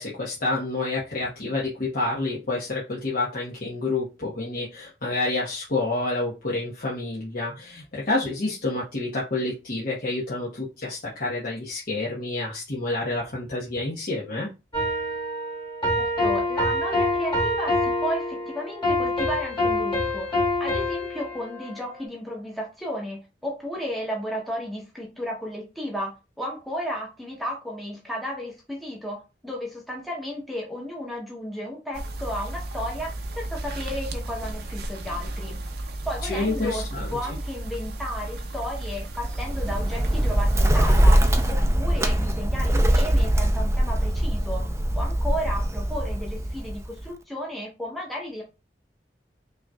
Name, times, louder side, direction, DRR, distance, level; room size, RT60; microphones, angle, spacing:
voice 1, 0.0-14.5 36.2-37.2, left 2 dB, 55° left, 1.2 m, -28 dB
sound 1, 14.7-22.0, left 1 dB, 30° left, 2.4 m, -26 dB
voice 2, 16.0-35.6 36.0-41.2 41.5-44.6 44.9-48.4, equal, ahead, 0.9 m, -33 dB
sound 2, 31.9-41.5, right 1 dB, 65° right, 0.7 m, -34 dB
Bird, 39.3-47.1, right 1 dB, 15° right, 0.5 m, -22 dB
5.5 x 2.9 x 2.3 m
head